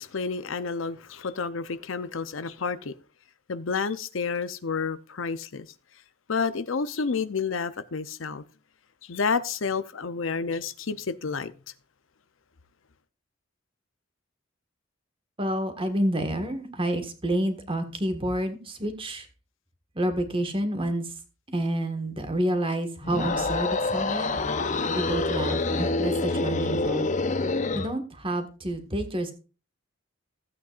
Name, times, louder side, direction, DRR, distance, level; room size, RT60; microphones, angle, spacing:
voice 1, 0.0-2.9 3.5-5.7 6.3-8.4 9.0-11.5, left 5 dB, 75° left, 0.7 m, -30 dB
voice 2, 15.4-19.3 19.9-21.1 21.5-24.3 24.9-27.1 27.7-29.3, right 1 dB, 25° right, 1.6 m, -29 dB
sound 1, 23.0-27.9, left 3 dB, 40° left, 0.8 m, -27 dB
15.5 x 8.5 x 2.5 m
head